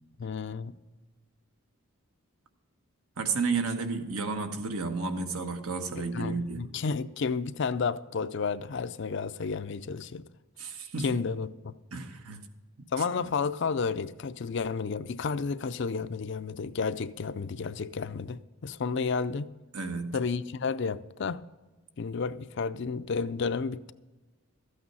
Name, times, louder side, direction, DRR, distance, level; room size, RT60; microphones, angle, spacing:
voice 1, 0.2-0.7 6.0-10.2 11.0-11.7 12.9-19.5 20.1-21.4 22.0-23.9, left 5 dB, 55° left, 0.4 m, -31 dB
voice 2, 3.2-6.6 10.6-11.1 11.9-12.5 12.8-12.9 13.2-13.3 19.7-20.2, right 4 dB, 80° right, 1.3 m, -32 dB
13.5 x 8.7 x 5.5 m
head